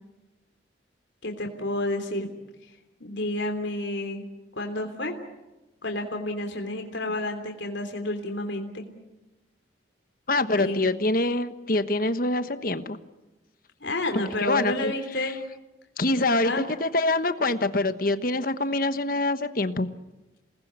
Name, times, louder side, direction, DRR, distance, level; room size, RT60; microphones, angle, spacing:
voice 1, 1.2-2.3 3.0-4.3 4.5-5.1 5.8-8.8 10.6-10.8 13.8-15.4 16.4-16.6, left 1 dB, 70° left, 4 dB, 3.2 m, -30 dB
voice 2, 10.3-13.0 14.4-14.9 15.2-15.3 16.0-19.9, left 2 dB, 45° left, 10 dB, 1.2 m, -25 dB
28.0 x 20.0 x 8.3 m, 1.1 s
head